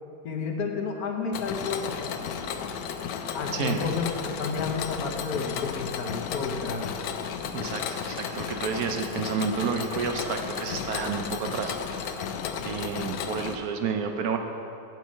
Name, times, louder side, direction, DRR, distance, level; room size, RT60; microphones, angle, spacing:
voice 1, 0.2-2.2 3.3-6.9, left 4 dB, 65° left, 2 dB, 1.3 m, -31 dB
Mechanisms, 1.3-13.5, left 7 dB, 90° left, 1.2 m, -33 dB
voice 2, 7.5-12.2 12.6-14.4, right 6 dB, 70° right, 4 dB, 1.0 m, -30 dB
7.6 x 5.5 x 7.3 m, 2.6 s
omnidirectional pair, 1.8 m